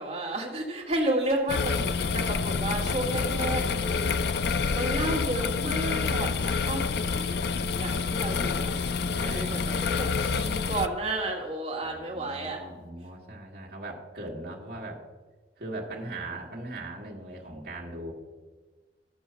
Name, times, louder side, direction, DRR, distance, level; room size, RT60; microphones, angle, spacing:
voice 1, 0.0-8.7 9.2-12.6, right 1 dB, 35° right, -1 dB, 2.2 m, -32 dB
sound 1, 1.5-10.9, left 5 dB, 60° left, 0.4 m, -28 dB
voice 2, 2.4-2.9 4.2-4.4 7.0-7.2 7.5-7.8 9.1-10.1 11.8-15.0 15.6-18.1, right 2 dB, 55° right, -3 dB, 1.8 m, -40 dB
13.5 x 6.3 x 5.8 m, 1.3 s
head